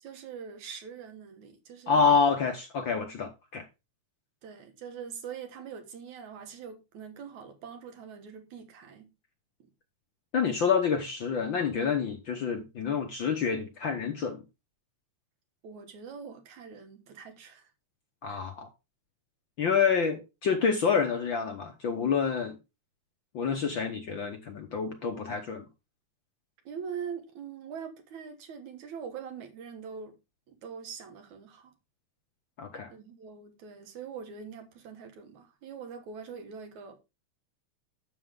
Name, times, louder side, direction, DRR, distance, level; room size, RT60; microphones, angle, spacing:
voice 1, 0.0-2.2 4.4-9.1 9.6-9.7 15.6-17.7 18.3-18.4 26.6-30.2 30.5-31.7 32.9-37.0, right 6 dB, 75° right, 3.1 m, -43 dB
voice 2, 1.9-3.7 10.3-14.4 18.2-18.7 19.6-22.6 23.3-25.6 32.6-32.9, left 5 dB, 55° left, 1.4 m, -28 dB
11.0 x 7.5 x 3.7 m
omnidirectional pair, 3.3 m